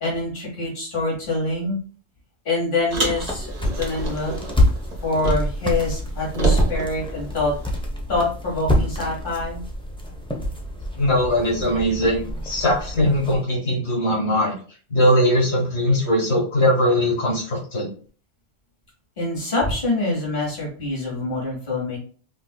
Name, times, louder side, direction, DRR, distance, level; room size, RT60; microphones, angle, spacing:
voice 1, 0.0-1.8 2.5-4.4 5.0-7.5 8.1-9.6 19.2-22.0, left 2 dB, 50° left, -5 dB, 1.8 m, -25 dB
sound 1, 2.9-13.4, left 1 dB, 5° left, 0.4 m, -27 dB
Car, 2.9-5.7 6.0-7.8, right 3 dB, 40° right, 0.9 m, -27 dB
voice 2, 11.0-14.5 14.9-17.9, equal, 80° left, -5 dB, 1.9 m, -20 dB
5.1 x 2.5 x 2.2 m, 0.41 s
omnidirectional pair, 1.1 m